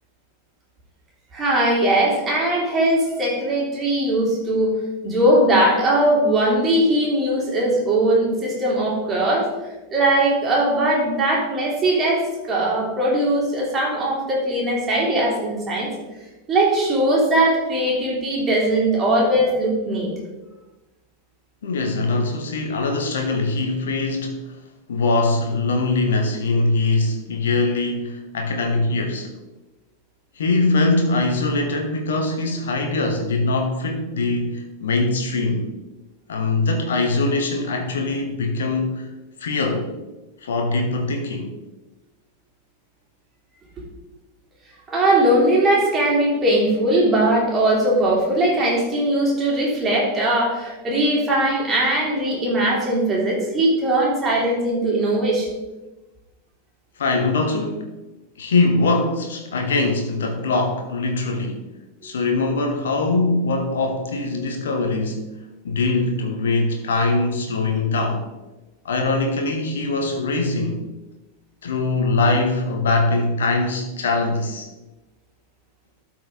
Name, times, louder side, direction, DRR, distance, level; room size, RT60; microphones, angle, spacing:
voice 1, 1.3-4.7 5.0-9.5 9.9-15.9 16.5-20.1 44.9-55.5, right 1 dB, 20° right, -4 dB, 3.2 m, -20 dB
voice 2, 21.6-24.5 24.9-29.3 30.4-35.7 36.3-39.1 39.4-39.9 40.4-41.5 57.0-57.9 58.4-61.6 62.0-65.3 65.6-68.2 68.8-70.8 71.6-74.7, left 3 dB, 65° left, 4 dB, 1.0 m, -22 dB
12.0 x 4.8 x 3.8 m, 1.1 s
figure-of-eight pair, 90°, 0 cm